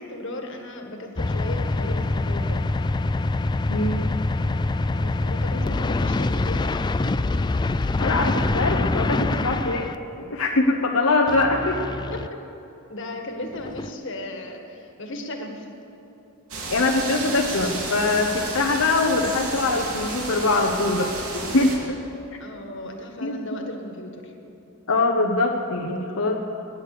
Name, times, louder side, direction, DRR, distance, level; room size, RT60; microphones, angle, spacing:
voice 1, 0.0-2.7 4.9-6.8 12.1-12.4 12.9-15.7 22.4-24.3, left 1 dB, 60° left, 3 dB, 1.8 m, -35 dB
sound 1, 1.2-10.0 11.3-12.3 13.5-13.9, left 2 dB, 20° left, 0.3 m, -25 dB
voice 2, 3.7-4.1 8.0-9.9 10.3-11.8 16.7-22.0 23.2-23.4 24.9-26.4, left 2 dB, 85° left, 0 dB, 1.0 m, -23 dB
sound 2, 16.5-21.8, right 2 dB, 85° right, 2.8 m, -32 dB
19.5 x 10.0 x 6.7 m, 3.0 s
head